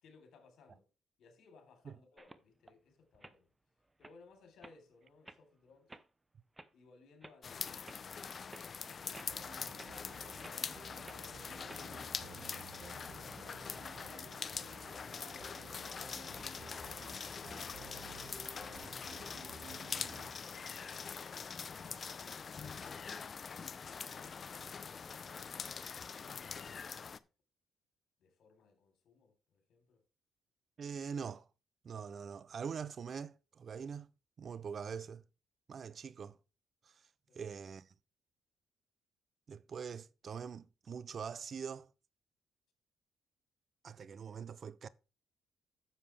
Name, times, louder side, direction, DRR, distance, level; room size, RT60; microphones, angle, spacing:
voice 1, 0.0-0.9 1.2-3.5 4.0-6.0 6.7-9.6 11.1-12.3 12.8-13.5 14.7-16.4 17.9-19.5 20.3-22.2 23.5-27.3 28.2-30.0 37.3-37.4, left 4 dB, 70° left, 3.5 m, -63 dB
sound 1, 2.2-2.7 3.1-3.4 3.8-4.2 4.6-4.8 5.3-5.4 5.9-6.1 6.6-6.7 7.2-7.4 7.8-8.0 8.5-8.7 9.1-9.4 9.8-9.9 10.4-10.6 11.0-11.2 11.7-11.8, right 2 dB, 15° right, 0.8 m, -53 dB
sound 2, 7.4-27.2, left 6 dB, 45° left, 0.6 m, -44 dB
sound 3, 9.3-20.3, right 5 dB, 65° right, 1.8 m, -54 dB
voice 2, 30.8-31.5 31.8-34.1 34.4-35.2 35.7-36.4 36.8-37.0 37.3-37.9 39.5-41.9 43.8-44.9, right 6 dB, 50° right, 0.5 m, -43 dB
9.9 x 7.4 x 3.4 m
cardioid pair, 90°, 0 cm